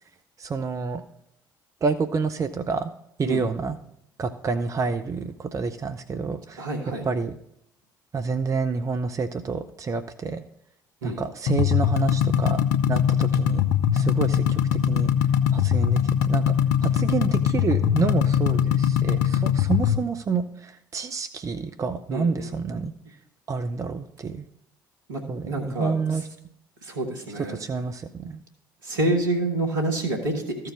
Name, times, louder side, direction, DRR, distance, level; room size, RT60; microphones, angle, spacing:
voice 1, 0.4-1.0 1.8-2.9 3.2-3.8 4.2-6.7 7.0-7.4 8.1-10.4 11.0-12.6 12.9-13.6 13.9-15.1 15.5-16.0 16.3-16.6 16.8-22.9 23.5-24.5 25.3-26.3 27.5-28.4, right 5 dB, 30° right, 9 dB, 0.6 m, -28 dB
voice 2, 6.6-7.0 11.0-11.2 22.1-22.5 25.1-25.9 26.8-27.6 28.8-30.3, right 2 dB, 75° right, 3 dB, 1.5 m, -27 dB
sound 1, 11.5-20.0, left 9 dB, 65° left, 0.6 m, -22 dB
14.0 x 4.7 x 4.6 m, 0.76 s
figure-of-eight pair, 50°, 11 cm